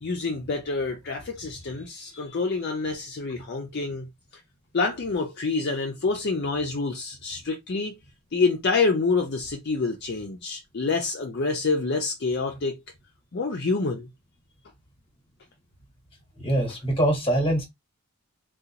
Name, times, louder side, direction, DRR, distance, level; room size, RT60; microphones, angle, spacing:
voice 1, 0.0-4.1 4.7-8.0 8.3-12.8 13.3-14.1, left 4 dB, 50° left, 0.5 m, -27 dB
voice 2, 16.4-17.7, right 1 dB, 25° left, 1.2 m, -23 dB
3.8 x 2.3 x 2.8 m
head